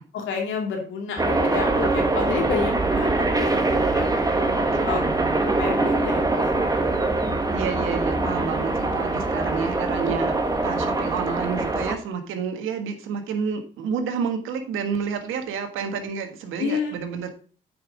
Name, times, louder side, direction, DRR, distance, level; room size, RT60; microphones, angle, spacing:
voice 1, 0.1-4.1 4.4-4.5 4.8-5.1 5.6-6.4 6.7-7.1 16.6-16.9, left 5 dB, 80° left, 2 dB, 2.9 m, -30 dB
sound 1, 1.2-12.0, right 2 dB, 20° right, 1.4 m, -23 dB
voice 2, 4.5-5.4 7.5-17.3, right 6 dB, 85° right, 7 dB, 1.5 m, -30 dB
8.6 x 5.5 x 5.0 m, 0.40 s
cardioid pair, 90°, 20 cm